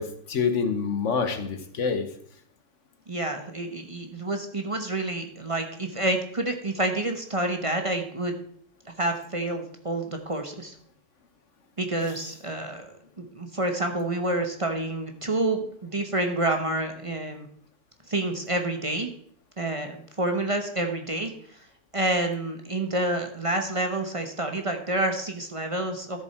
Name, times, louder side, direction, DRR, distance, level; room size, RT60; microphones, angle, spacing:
voice 1, 0.0-2.1, left 5 dB, 75° left, 8 dB, 1.5 m, -27 dB
voice 2, 3.1-8.3 9.0-10.7 11.8-17.5 18.1-19.1 19.6-21.6 21.9-26.2, right 2 dB, 30° right, 4 dB, 1.0 m, -28 dB
13.0 x 7.1 x 4.4 m, 0.62 s
omnidirectional pair, 1.3 m